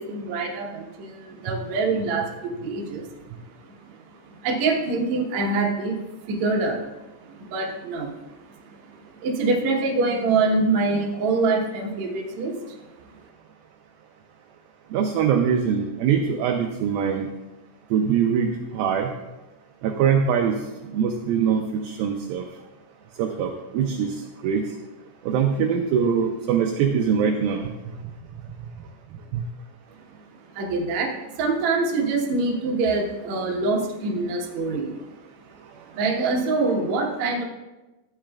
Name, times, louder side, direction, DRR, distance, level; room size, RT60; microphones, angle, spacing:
voice 1, 0.0-3.1 3.7-4.0 4.4-6.0 6.2-7.0 7.3-8.1 8.7-8.8 9.2-12.8 30.5-35.0 35.9-37.4, right 3 dB, 65° right, -1 dB, 1.8 m, -25 dB
voice 2, 14.9-17.3 17.9-19.1 19.8-20.6 20.9-22.5 23.2-24.2 24.4-24.6 25.3-27.6 29.3-29.4, right 7 dB, 80° right, 3 dB, 2.1 m, -23 dB
13.5 x 8.9 x 2.3 m, 1.1 s
omnidirectional pair, 4.7 m